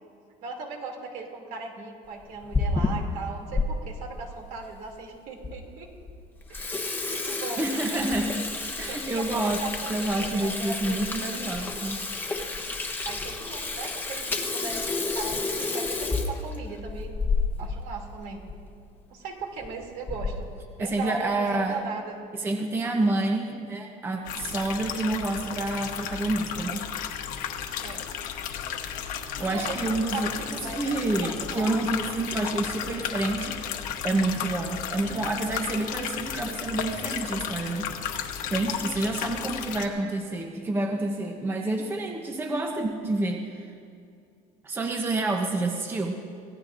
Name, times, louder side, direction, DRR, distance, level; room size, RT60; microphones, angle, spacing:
voice 1, 0.4-5.9 6.5-7.7 8.9-11.3 13.0-14.8 15.1-17.2 17.6-18.4 19.1-22.2 27.8-28.0 29.4-31.7, right 4 dB, 65° right, 1 dB, 2.8 m, -38 dB
Water tap faucet / Sink (filling or washing), 2.2-3.7 4.2-4.3 5.0-5.1 5.4-5.5 5.9-6.1 6.4-17.8 18.1-18.2 18.5-18.6 19.4-19.7 20.1-20.5, left 3 dB, 15° left, 1.0 m, -30 dB
voice 2, 7.6-8.5 8.8-9.6 9.9-12.0 20.8-21.8 22.3-26.9 29.4-33.6 34.0-37.9 38.5-43.7 44.6-46.2, right 2 dB, 15° right, 3 dB, 0.8 m, -28 dB
sound 1, 24.3-39.9, left 8 dB, 60° left, 1.2 m, -34 dB
25.0 x 17.5 x 2.6 m, 2.4 s
cardioid pair, 165°, 15 cm